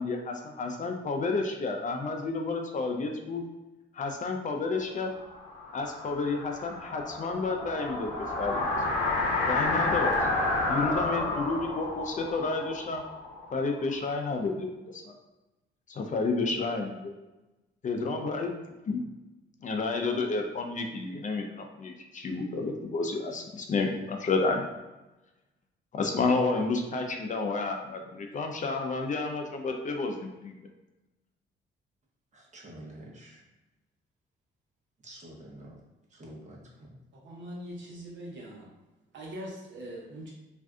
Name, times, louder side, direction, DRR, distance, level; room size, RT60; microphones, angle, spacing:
voice 1, 0.0-3.4 3.9-5.1 5.7-8.1 8.4-8.7 9.5-10.1 10.7-13.0 13.5-15.1 15.9-17.1 17.8-18.5 18.9-19.0 19.6-24.7 25.9-30.5, left 3 dB, 40° left, 3 dB, 0.4 m, -30 dB
sound 1, 5.1-13.9, left 2 dB, 90° left, 0.6 m, -30 dB
voice 2, 32.3-33.4 35.0-35.8 36.1-36.6, right 1 dB, 35° right, -2 dB, 0.9 m, -47 dB
voice 3, 37.2-38.7 39.1-40.3, equal, 70° right, -3 dB, 0.9 m, -41 dB
2.5 x 2.2 x 3.5 m, 1.1 s
cardioid pair, 90°, 20 cm